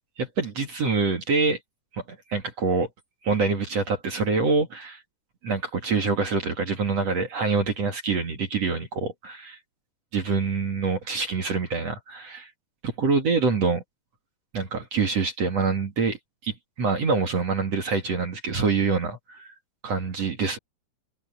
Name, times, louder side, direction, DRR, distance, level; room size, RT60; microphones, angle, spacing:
voice 1, 0.2-1.6 1.9-2.0 2.3-2.9 3.2-5.0 5.4-9.6 10.1-12.5 12.8-13.8 14.5-16.2 16.4-19.5 19.8-20.6, right 4 dB, 45° right, 2.2 m, -25 dB
omnidirectional pair, 5.9 m